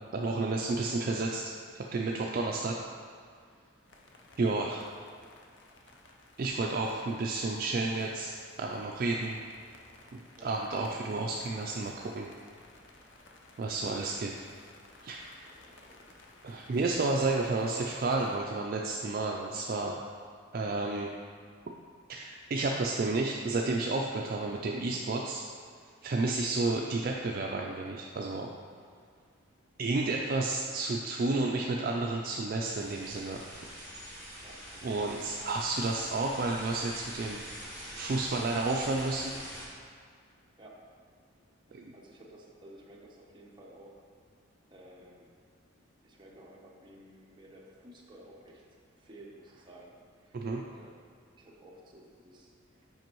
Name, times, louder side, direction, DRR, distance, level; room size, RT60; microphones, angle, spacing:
voice 1, 0.1-2.7 4.4-4.8 6.4-9.4 10.1-12.3 13.6-14.3 15.0-15.3 16.4-20.0 20.5-21.1 22.1-25.5 25.8-28.5 29.8-33.4 34.8-37.4 37.9-39.4 41.7-41.9 50.3-50.6, right 3 dB, 45° right, 0 dB, 0.3 m, -31 dB
sound 1, 3.9-18.4, left 2 dB, 60° left, 0.6 m, -57 dB
voice 2, 5.0-5.4 5.8-6.3 10.4-10.5 14.3-14.7 15.8-16.2 34.4-34.6 40.6-40.9 41.7-44.0 44.7-45.3 46.0-50.4 50.7-52.9, right 1 dB, 20° right, -3 dB, 0.8 m, -54 dB
sound 2, 32.6-39.7, equal, 15° left, 1.4 m, -45 dB
7.8 x 5.3 x 3.0 m, 2.1 s
head